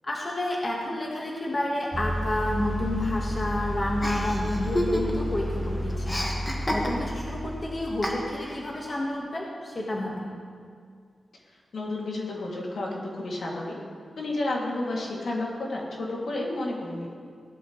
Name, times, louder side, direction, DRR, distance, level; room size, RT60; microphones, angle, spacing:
voice 1, 0.0-6.4 6.7-10.3, left 1 dB, 30° left, -3 dB, 1.6 m, -30 dB
sound 1, 1.9-8.5, equal, 10° right, 1.0 m, -32 dB
Chuckle chortle, 4.0-5.4 5.6-7.3 8.0-8.6, equal, 15° left, 1.8 m, -30 dB
voice 2, 11.7-13.8 14.2-17.1, left 2 dB, 70° left, -3 dB, 2.6 m, -31 dB
16.5 x 12.0 x 3.2 m, 2.1 s
wide cardioid pair, 130°, 0 cm